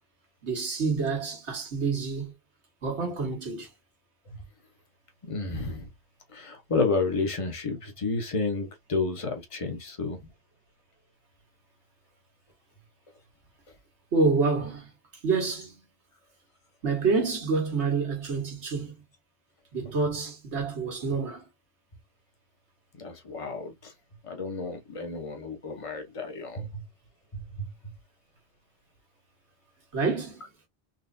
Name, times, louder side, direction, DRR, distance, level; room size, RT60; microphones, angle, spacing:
voice 1, 0.4-2.3 2.8-3.7 14.1-14.9 15.2-15.8 16.8-18.9 19.7-21.5 29.9-30.4, right 4 dB, 80° right, 1.7 m, -27 dB
voice 2, 5.3-5.9 6.3-10.2 22.9-23.9 24.2-26.9 27.3-27.7, left 3 dB, 30° left, 0.9 m, -31 dB
4.2 x 3.1 x 2.6 m
omnidirectional pair, 1.1 m